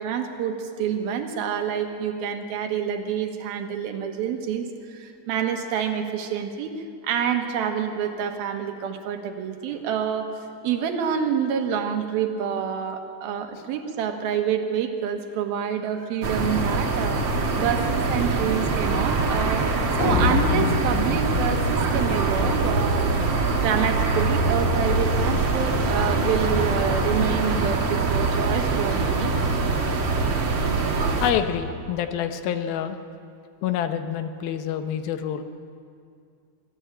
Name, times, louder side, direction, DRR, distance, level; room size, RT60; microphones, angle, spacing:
voice 1, 0.0-6.7 7.0-23.1 23.6-29.3, right 8 dB, 85° right, 5 dB, 3.3 m, -27 dB
sound 1, 16.2-31.3, right 3 dB, 45° right, 1.7 m, -23 dB
sound 2, 20.0-23.1, left 5 dB, 45° left, 0.9 m, -27 dB
voice 2, 31.2-33.0 33.6-35.4, left 9 dB, 85° left, 8 dB, 2.8 m, -27 dB
23.5 x 14.0 x 9.0 m, 2.4 s
omnidirectional pair, 4.2 m